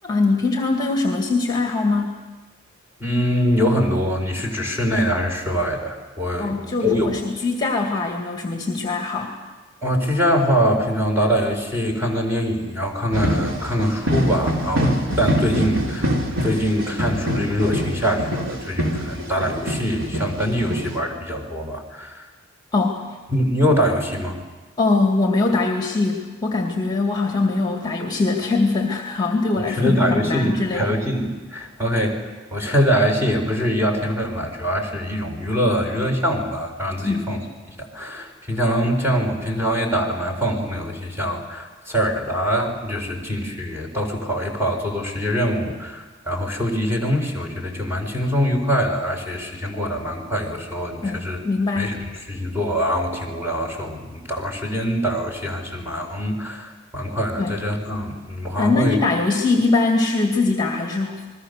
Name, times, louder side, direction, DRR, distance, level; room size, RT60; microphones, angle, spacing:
voice 1, 0.0-2.2 6.4-9.3 22.7-23.0 24.8-31.0 37.0-37.2 51.0-51.9 57.4-57.5 58.6-61.3, left 3 dB, 20° left, 1 dB, 2.2 m, -22 dB
voice 2, 3.0-7.2 9.8-16.1 16.4-22.3 23.3-24.4 29.6-32.2 32.5-37.4 37.8-51.4 51.8-52.0 52.3-59.0, equal, 10° right, 2 dB, 4.2 m, -23 dB
sound 1, 13.1-21.0, equal, 70° right, 3.4 m, -25 dB
29.0 x 21.0 x 6.7 m, 1.3 s
head